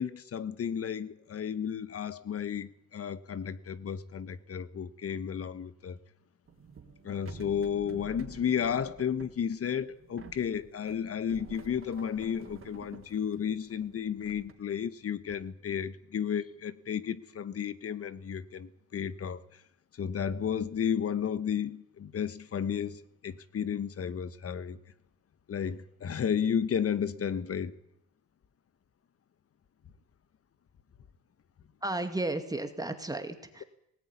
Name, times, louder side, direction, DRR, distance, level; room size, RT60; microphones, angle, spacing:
voice 1, 0.0-6.0 7.0-19.4 20.0-24.8 25.5-27.7, left 8 dB, 50° left, 1.4 m, -33 dB
sound 1, 6.5-14.5, right 5 dB, 45° right, 3.6 m, -50 dB
voice 2, 31.8-33.6, right 2 dB, 10° right, 2.2 m, -33 dB
19.5 x 18.5 x 9.8 m
cardioid pair, 90°, 30 cm